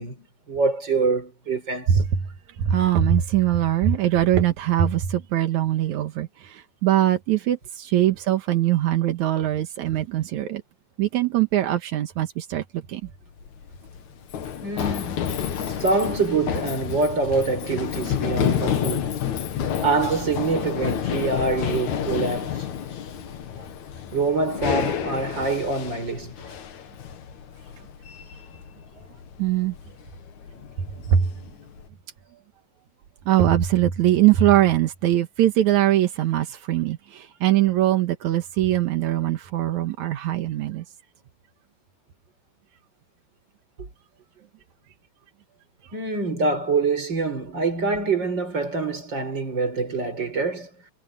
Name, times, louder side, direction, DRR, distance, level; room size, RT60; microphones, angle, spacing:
voice 1, 0.0-2.0 8.0-8.1 14.6-19.2 19.8-22.7 24.1-26.3 43.8-43.9 45.9-50.7, right 4 dB, 35° right, 5.9 m, -25 dB
voice 2, 1.9-2.3 2.6-10.6 11.0-13.0 23.6-23.7 29.4-29.8 31.1-31.3 33.3-40.8 45.8-45.9, right 12 dB, 85° right, 2.6 m, -22 dB
Run, 13.3-31.9, left 9 dB, 80° left, 3.1 m, -30 dB
omnidirectional pair, 3.3 m